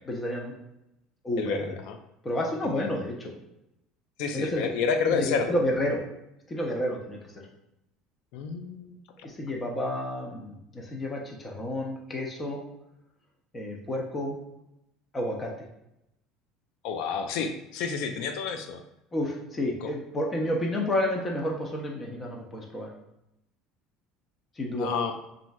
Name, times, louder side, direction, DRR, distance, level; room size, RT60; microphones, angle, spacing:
voice 1, 0.1-0.5 1.2-1.7 2.2-3.3 4.3-4.7 5.0-6.0 6.5-7.5 9.2-12.6 13.5-14.4 15.1-15.5 19.1-22.9 24.6-24.9, left 1 dB, 20° left, 0 dB, 0.5 m, -30 dB
voice 2, 1.4-2.0 2.7-2.9 4.2-5.6 8.3-9.0 16.8-18.8 19.8-19.9 24.8-25.2, left 5 dB, 70° left, 7 dB, 0.3 m, -29 dB
3.0 x 2.5 x 2.2 m, 0.86 s
cardioid pair, 135°, 0 cm